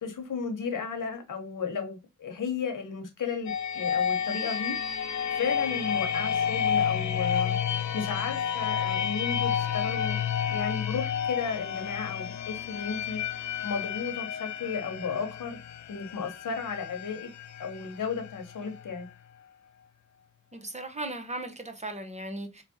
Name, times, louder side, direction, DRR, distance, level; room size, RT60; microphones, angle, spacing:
voice 1, 0.0-4.8 5.3-7.6 7.9-10.2 10.5-13.2 13.6-15.6 15.9-17.3 17.6-19.1, left 5 dB, 80° left, 1.0 m, -34 dB
sound 1, 3.5-19.1, left 8 dB, 65° left, 0.5 m, -31 dB
voice 2, 20.5-22.6, right 1 dB, 20° right, 0.9 m, -37 dB
3.3 x 3.0 x 2.7 m
cardioid pair, 70°, 31 cm